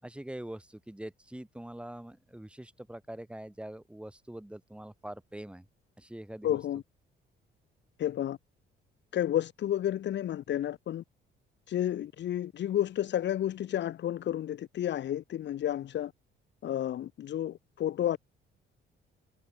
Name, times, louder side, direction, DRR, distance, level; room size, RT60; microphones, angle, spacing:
voice 1, 0.0-5.6 6.0-6.6, right 1 dB, 5° right, 6.6 m, -43 dB
voice 2, 6.4-6.8 8.0-8.4 9.1-11.0 11.7-16.1 16.6-18.2, left 11 dB, 60° left, 1.3 m, -31 dB
cardioid pair, 110°, 21 cm